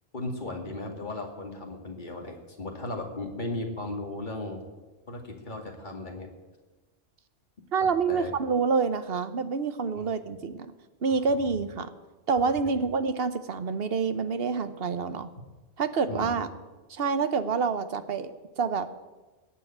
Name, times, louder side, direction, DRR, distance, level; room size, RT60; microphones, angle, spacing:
voice 1, 0.1-4.6 5.1-6.3 7.8-8.3 10.0-10.1 11.1-11.6 12.7-12.9 16.1-16.4, left 2 dB, 40° left, 2 dB, 2.3 m, -36 dB
voice 2, 7.7-10.7 11.0-11.9 12.3-15.3 15.8-16.5 16.9-18.9, right 5 dB, 60° right, 11 dB, 1.1 m, -27 dB
18.5 x 6.9 x 8.7 m, 1.2 s
omnidirectional pair, 1.2 m